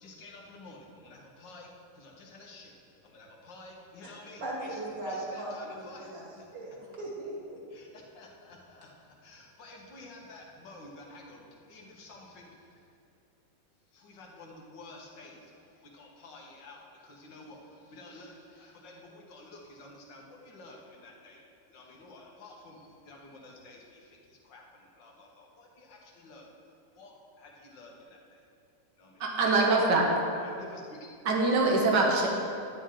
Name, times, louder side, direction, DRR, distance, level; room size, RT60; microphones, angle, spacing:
voice 1, 0.0-2.7 3.0-4.7 5.1-6.1 7.7-11.4 11.7-12.5 13.9-15.5 15.8-17.6 17.9-21.4 21.7-24.2 24.4-24.6 25.0-26.5 27.0-28.4 29.0-29.2 30.4-31.0, left 2 dB, 85° left, 0 dB, 2.0 m, -50 dB
voice 2, 4.4-7.6, right 1 dB, 55° right, -5 dB, 2.7 m, -38 dB
voice 3, 29.2-30.1 31.3-32.3, right 3 dB, 80° right, 0 dB, 1.9 m, -24 dB
11.0 x 9.9 x 3.7 m, 2.5 s
omnidirectional pair, 1.9 m